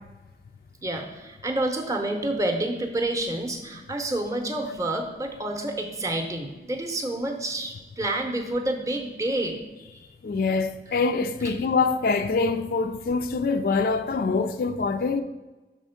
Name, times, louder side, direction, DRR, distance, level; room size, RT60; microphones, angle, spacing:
voice 1, 0.8-9.6 11.4-11.5, right 1 dB, 20° right, 0.6 m, -28 dB
voice 2, 10.2-15.2, left 4 dB, 55° left, 0.3 m, -24 dB
6.1 x 3.6 x 5.6 m
head